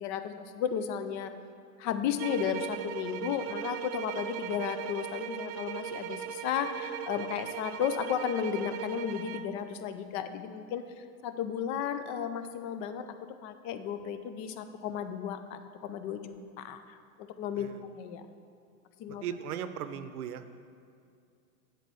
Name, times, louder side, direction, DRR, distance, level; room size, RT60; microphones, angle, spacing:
voice 1, 0.0-1.3 1.8-17.7 18.0-18.2 19.0-19.2, left 8 dB, 40° left, 10 dB, 0.6 m, -34 dB
sound 1, 2.2-9.5, right 11 dB, 40° right, 0.5 m, -38 dB
voice 2, 19.2-20.4, right 9 dB, 80° right, 11 dB, 0.7 m, -37 dB
7.8 x 4.5 x 6.8 m, 2.3 s
hypercardioid pair, 95°, 45 cm